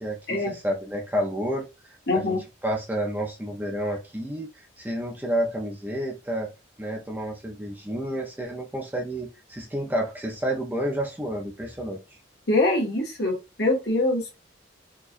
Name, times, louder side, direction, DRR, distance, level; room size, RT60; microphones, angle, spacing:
voice 1, 0.0-2.4 2.6-6.5 6.8-12.0, right 1 dB, 10° right, 0.6 m, -30 dB
voice 2, 2.1-2.4 12.5-14.4, left 2 dB, 60° left, 1.4 m, -24 dB
4.4 x 2.3 x 2.5 m
head